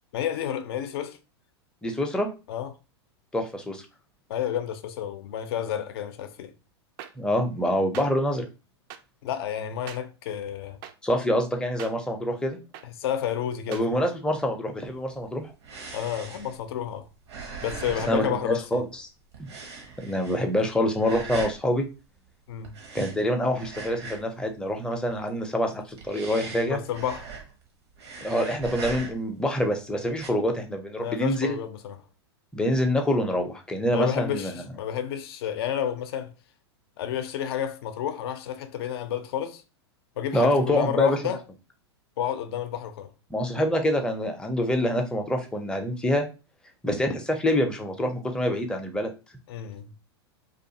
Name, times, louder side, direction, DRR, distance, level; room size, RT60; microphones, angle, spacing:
voice 1, 0.1-1.2 2.5-2.7 4.3-6.5 9.2-10.8 12.8-14.0 15.9-17.1 17.6-18.8 22.5-22.8 26.7-27.3 31.0-32.0 33.9-36.3 37.0-39.6 40.2-41.4 42.2-43.1 49.5-49.9, left 9 dB, 65° left, 0.5 m, -31 dB
voice 2, 1.8-2.3 3.3-3.8 7.2-8.5 11.0-12.6 13.7-15.5 18.1-18.9 19.4-19.5 20.0-21.9 22.9-26.8 28.2-31.6 32.5-34.7 40.3-41.2 43.3-46.3 46.8-49.1, equal, 5° left, 0.5 m, -26 dB
sound 1, 7.0-7.1 7.9-8.1 8.9-9.0 9.9-10.0 10.8-10.9 11.8-11.9 12.7-12.9 13.7-13.9, right 10 dB, 50° right, 0.4 m, -40 dB
sound 2, 15.0-19.0 19.3-20.6 21.0-21.6 22.6-24.4 24.7-25.3 25.8-27.7 27.9-29.4 30.1-30.3, right 4 dB, 80° right, 0.9 m, -40 dB
2.5 x 2.4 x 2.7 m
hypercardioid pair, 105°, 14 cm